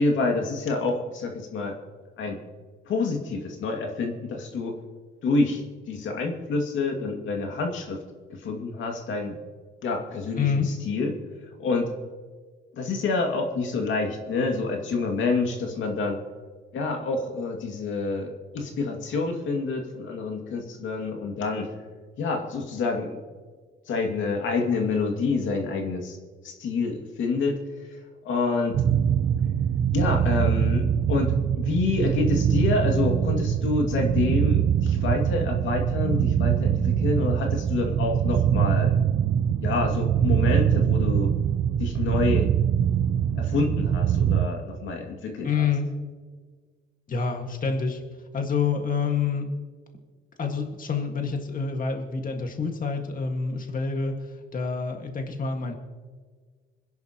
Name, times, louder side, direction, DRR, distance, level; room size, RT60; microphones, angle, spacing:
voice 1, 0.0-1.7 2.2-2.4 2.9-4.8 5.2-8.0 8.3-9.4 9.8-11.2 11.6-11.9 12.8-16.2 16.7-21.7 22.2-23.2 23.9-26.2 26.4-27.6 28.2-28.8 29.9-39.0 39.6-41.3 41.8-42.5 43.4-45.7, left 3 dB, 75° left, 2 dB, 2.4 m, -27 dB
voice 2, 10.4-10.7 45.4-45.9 47.1-48.0 48.3-49.5 50.4-55.7, left 5 dB, 45° left, 3 dB, 1.9 m, -27 dB
sound 1, 28.7-44.5, right 9 dB, 60° right, 0.8 m, -23 dB
26.5 x 10.5 x 3.0 m, 1.5 s
cardioid pair, 90°, 20 cm